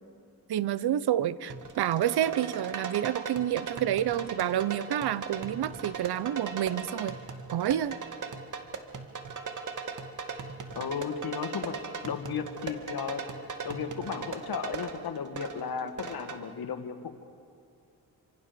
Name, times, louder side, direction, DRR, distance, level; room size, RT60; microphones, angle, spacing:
voice 1, 0.5-7.1 7.5-8.0, right 11 dB, 80° right, 17 dB, 0.9 m, -29 dB
sound 1, 1.5-16.4, right 5 dB, 50° right, 2.1 m, -38 dB
voice 2, 10.8-17.0, left 7 dB, 70° left, 7 dB, 2.2 m, -35 dB
27.5 x 25.5 x 7.0 m, 2.4 s
cardioid pair, 110°, 38 cm